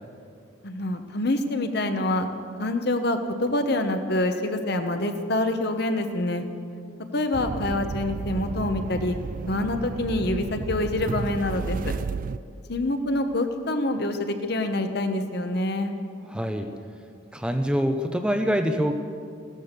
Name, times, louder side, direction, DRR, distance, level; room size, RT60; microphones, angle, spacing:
voice 1, 0.6-2.3 2.6-6.4 7.1-9.2 9.5-11.9 12.7-15.9, left 1 dB, 55° left, 7 dB, 1.1 m, -26 dB
sound 1, 7.3-12.4, right 4 dB, 45° right, 0.3 m, -32 dB
voice 2, 16.3-16.7 17.3-18.9, equal, 5° right, 6 dB, 0.6 m, -25 dB
16.0 x 13.0 x 6.8 m, 2.3 s
head